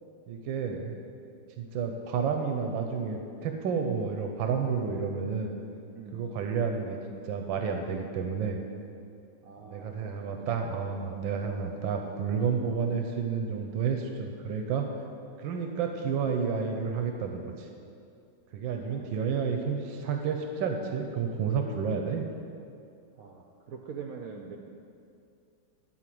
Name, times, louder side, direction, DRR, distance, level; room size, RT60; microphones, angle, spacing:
voice 1, 0.3-0.9 1.6-5.5 6.1-7.0 7.2-8.6 9.6-14.9 15.4-17.7 18.5-22.3, right 6 dB, 85° right, 4 dB, 1.5 m, -30 dB
voice 2, 5.9-6.3 9.4-10.8 15.8-16.6 18.9-19.6 23.2-24.6, right 6 dB, 65° right, 2 dB, 0.9 m, -45 dB
12.5 x 4.8 x 7.7 m, 2.5 s
omnidirectional pair, 2.0 m